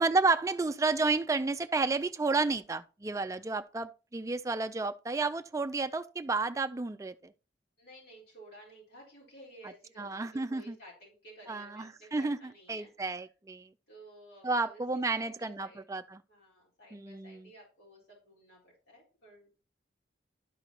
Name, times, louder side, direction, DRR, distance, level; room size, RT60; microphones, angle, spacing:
voice 1, 0.0-7.3 10.0-10.8 11.5-12.4 12.7-13.7 14.4-16.2 16.9-17.5, right 3 dB, 15° right, 0.3 m, -31 dB
voice 2, 7.8-13.3 13.9-15.8 16.3-19.5, right 1 dB, 70° left, 4.2 m, -54 dB
12.0 x 5.2 x 3.0 m
head